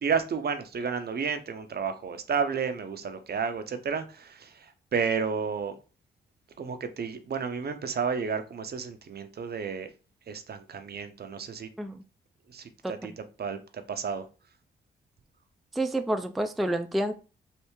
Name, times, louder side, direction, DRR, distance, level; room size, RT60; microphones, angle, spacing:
voice 1, 0.0-5.7 6.6-9.9 10.3-11.7 12.5-14.2, right 6 dB, 50° right, 0.6 m, -32 dB
voice 2, 15.8-17.1, right 1 dB, ahead, 0.4 m, -28 dB
3.3 x 2.7 x 3.0 m
supercardioid pair, 45°, 21 cm